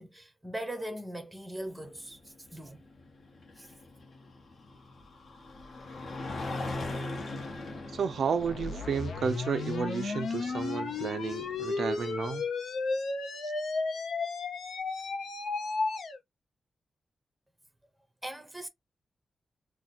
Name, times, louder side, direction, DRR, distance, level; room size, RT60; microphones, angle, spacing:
voice 1, 0.0-2.8 3.6-3.7 18.2-18.7, right 1 dB, 5° right, 0.7 m, -40 dB
sound 1, 1.7-12.3, left 2 dB, 55° left, 1.0 m, -42 dB
voice 2, 7.9-12.4 13.4-13.5, right 6 dB, 75° right, 0.3 m, -32 dB
sound 2, 8.4-16.2, left 4 dB, 80° left, 0.6 m, -33 dB
2.9 x 2.1 x 4.1 m
wide cardioid pair, 175°, 0 cm